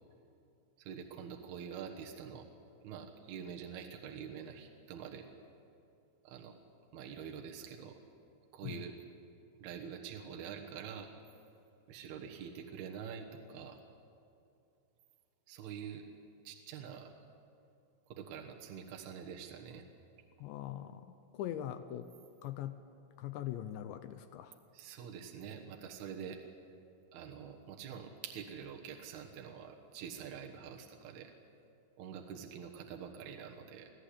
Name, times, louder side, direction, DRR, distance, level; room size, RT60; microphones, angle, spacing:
voice 1, 0.8-2.5 2.8-5.3 6.2-6.6 6.9-8.0 8.5-8.9 9.6-11.1 11.9-13.8 15.5-16.1 16.4-17.1 18.1-19.9 24.7-26.4 27.1-31.3 32.0-33.9, right 7 dB, 65° right, 1 dB, 2.7 m, -46 dB
voice 2, 20.4-22.1 22.4-22.8 23.2-24.6, left 11 dB, 80° left, 10 dB, 2.7 m, -42 dB
24.5 x 15.5 x 8.5 m, 2.7 s
omnidirectional pair, 5.8 m